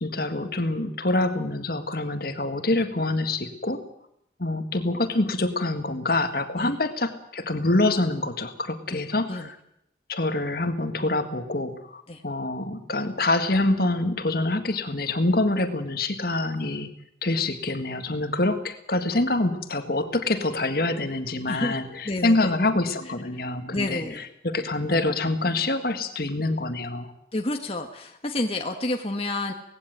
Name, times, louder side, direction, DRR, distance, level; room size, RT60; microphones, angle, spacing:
voice 1, 0.0-3.8 4.4-9.6 10.1-16.9 17.2-27.1, left 2 dB, 55° left, 8 dB, 1.8 m, -26 dB
voice 2, 22.0-22.4 23.7-24.2 27.3-29.5, left 2 dB, 30° left, 3 dB, 1.5 m, -29 dB
18.5 x 16.5 x 9.1 m, 0.75 s
head